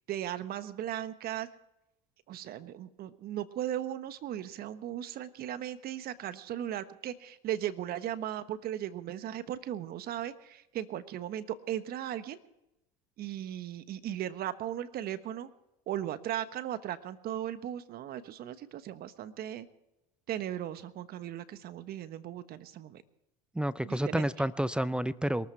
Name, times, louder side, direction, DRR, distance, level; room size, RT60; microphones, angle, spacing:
voice 1, 0.1-1.5 2.3-12.4 13.2-15.5 15.9-19.7 20.3-23.0 23.8-24.3, right 11 dB, 50° right, 12 dB, 1.3 m, -37 dB
voice 2, 23.6-25.5, right 1 dB, 5° right, 15 dB, 0.5 m, -30 dB
22.0 x 13.5 x 4.6 m, 0.88 s
hypercardioid pair, 85°, 21 cm